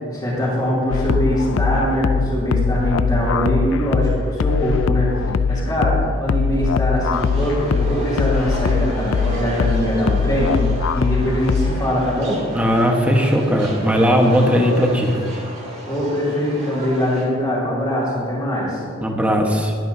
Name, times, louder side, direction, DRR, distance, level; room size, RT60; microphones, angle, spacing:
voice 1, 0.1-5.1 5.5-10.6 10.9-12.4 15.9-18.8, equal, 15° left, -13 dB, 2.9 m, -22 dB
sound 1, 0.9-11.9, left 4 dB, 75° left, 0.4 m, -21 dB
sound 2, 7.1-17.2, equal, 35° right, 3.2 m, -34 dB
voice 2, 12.5-15.2 19.0-19.7, equal, 5° right, 1 dB, 1.2 m, -17 dB
21.5 x 9.3 x 2.7 m, 2.2 s
head